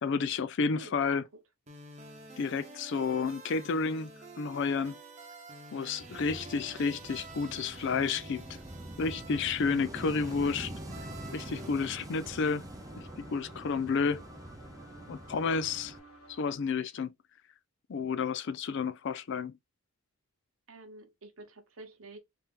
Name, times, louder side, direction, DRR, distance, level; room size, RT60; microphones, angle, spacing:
voice 1, 0.0-1.2 2.4-5.0 5.7-8.4 9.0-10.7 11.3-12.6 13.2-14.2 15.1-16.0 16.4-17.1 17.9-19.5, left 5 dB, 55° left, 0.4 m, -31 dB
voice 2, 0.7-1.2 20.7-22.2, right 2 dB, 70° right, 1.0 m, -49 dB
sound 1, 1.7-11.9, right 2 dB, 30° right, 0.9 m, -49 dB
Wind / Waves surf, 6.0-16.0, right 1 dB, 15° right, 0.5 m, -45 dB
sound 2, 10.9-16.6, equal, 90° left, 1.0 m, -54 dB
3.5 x 2.8 x 3.6 m
head